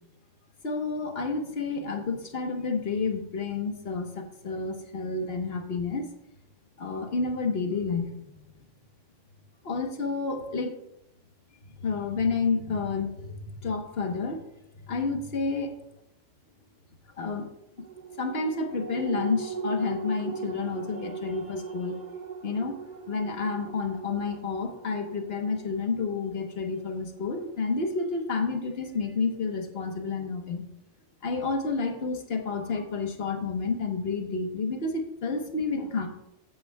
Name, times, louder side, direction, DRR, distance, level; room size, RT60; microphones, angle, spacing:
voice 1, 0.6-6.1 6.8-8.4 9.6-10.8 11.8-14.4 14.8-15.7 17.2-17.5 18.2-22.0 22.4-22.8 23.1-30.6 31.2-36.1, left 4 dB, 50° left, 4 dB, 1.3 m, -30 dB
sound 1, 17.8-28.6 29.0-29.1, right 4 dB, 45° right, 0.7 m, -40 dB
14.0 x 8.4 x 2.3 m, 0.83 s
omnidirectional pair, 1.3 m